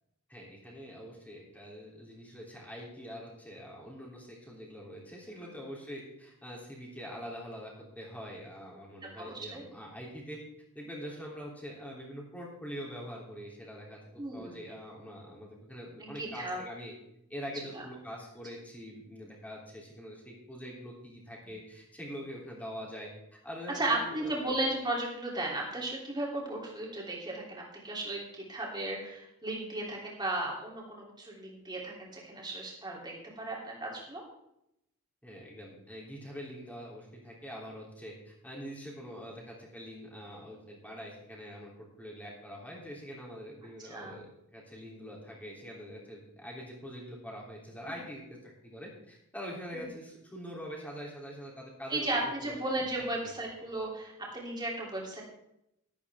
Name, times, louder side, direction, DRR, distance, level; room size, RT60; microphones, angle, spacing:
voice 1, 0.3-10.4 10.7-14.0 14.3-16.9 17.3-23.1 23.4-24.3 35.2-41.7 42.0-52.5 53.2-53.3, equal, 5° left, -3 dB, 3.2 m, -44 dB
voice 2, 9.2-9.6 14.2-14.6 16.0-16.6 17.7-17.8 23.7-34.2 43.9-44.2 49.7-49.8 51.9-55.2, right 2 dB, 20° right, -2 dB, 3.3 m, -35 dB
12.5 x 12.0 x 3.6 m, 0.80 s
head